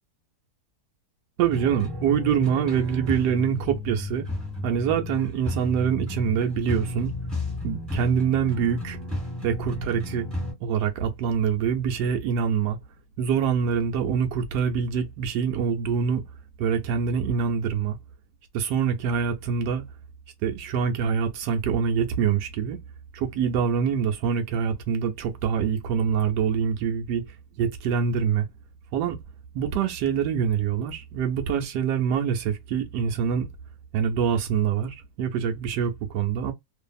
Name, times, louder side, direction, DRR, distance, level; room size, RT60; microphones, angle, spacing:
voice 1, 1.4-4.3 4.6-7.1 7.6-9.0 9.4-10.3 10.6-12.8 13.2-16.2 16.6-18.0 18.5-19.9 20.4-22.8 23.1-27.2 27.6-28.5 28.9-29.2 29.5-33.5 33.9-36.5, right 7 dB, 80° right, 1.1 m, -25 dB
sound 1, 1.5-10.5, left 1 dB, ahead, 1.3 m, -33 dB
2.7 x 2.5 x 2.3 m
omnidirectional pair, 1.8 m